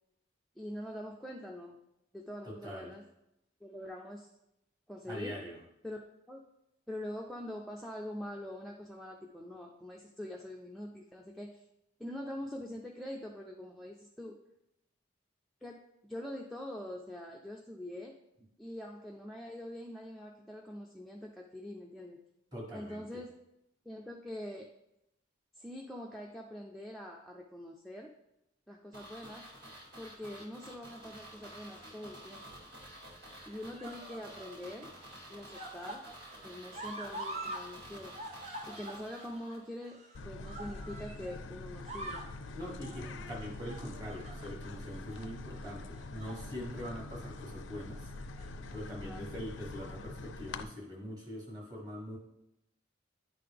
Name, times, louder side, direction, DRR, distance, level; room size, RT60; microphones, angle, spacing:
voice 1, 0.6-1.8 2.1-3.0 3.6-4.3 4.9-5.4 5.8-6.0 6.3-6.4 6.9-11.6 12.0-14.4 15.6-18.2 18.6-22.2 22.7-23.3 23.9-24.7 25.5-28.1 28.7-29.5 30.0-32.4 33.5-34.9 35.3-36.0 36.4-38.1 38.7-42.3 42.9-43.2 48.9-49.3, left 1 dB, ahead, -1 dB, 0.3 m, -44 dB
voice 2, 2.5-2.9 5.1-5.6 22.5-23.2 42.5-48.1 48.7-52.2, equal, 20° right, -1 dB, 1.4 m, -43 dB
sound 1, 28.9-39.9 40.1-40.2, right 1 dB, 60° right, 1.8 m, -51 dB
sound 2, 31.8-32.4 33.3-34.6 34.9-37.7 37.9-41.4 41.7-42.4 42.8-43.1 43.7-44.7 45.1-45.3 46.0-46.5 46.8-47.0 48.1-48.8 49.6-49.7, right 1 dB, 35° right, 0.7 m, -46 dB
sound 3, 40.1-50.6, left 2 dB, 90° left, 0.4 m, -45 dB
10.0 x 3.8 x 3.3 m, 0.86 s
head